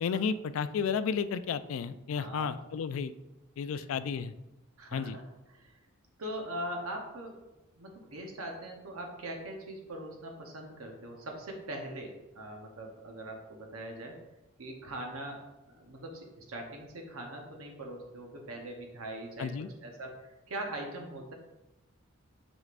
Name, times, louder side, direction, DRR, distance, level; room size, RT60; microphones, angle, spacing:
voice 1, 0.0-3.1 3.6-4.3 4.9-5.2 19.4-19.7, left 6 dB, 70° left, 13 dB, 0.3 m, -32 dB
voice 2, 2.1-2.5 3.7-4.0 4.8-5.2 5.5-5.8 6.2-7.4 7.7-14.2 14.6-15.4 15.8-21.3, right 1 dB, 80° right, 2 dB, 0.9 m, -41 dB
6.3 x 6.1 x 2.5 m, 0.99 s
head